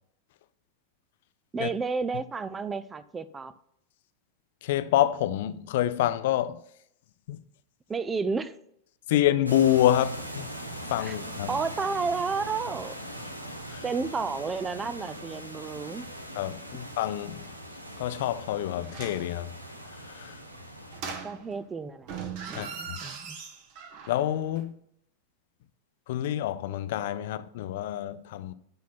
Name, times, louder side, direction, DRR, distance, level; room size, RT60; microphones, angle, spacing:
voice 1, 1.5-3.5 7.9-8.6 11.0-11.2 11.5-13.0 13.8-16.1 21.2-22.1 22.5-23.4, right 4 dB, 15° right, 0.5 m, -31 dB
voice 2, 4.6-6.6 7.3-7.4 9.1-10.5 10.8-11.5 13.7-13.8 16.3-17.4 18.0-19.5 19.9-20.4 22.5-23.0 24.1-24.7 26.1-28.5, left 12 dB, 55° left, 0.5 m, -27 dB
sound 1, 9.5-21.0, equal, 85° right, 1.0 m, -41 dB
sound 2, 18.8-19.3 20.9-21.7 22.0-24.3 24.6-24.7, right 6 dB, 45° right, 1.2 m, -39 dB
12.0 x 4.2 x 5.9 m
figure-of-eight pair, 90°, 0 cm